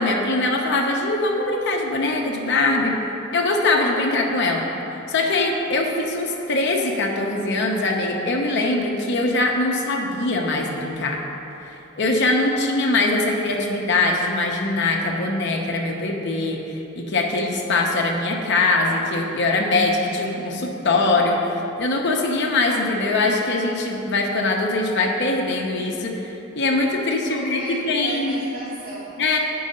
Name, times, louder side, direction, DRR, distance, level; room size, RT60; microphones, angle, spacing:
voice 1, 0.0-3.0 3.3-4.6 5.1-11.2 12.0-28.4 29.2-29.4, left 2 dB, 55° left, 1 dB, 0.7 m, -22 dB
voice 2, 27.0-29.4, right 2 dB, 45° right, -6 dB, 1.0 m, -35 dB
8.4 x 4.7 x 5.4 m, 3.0 s
head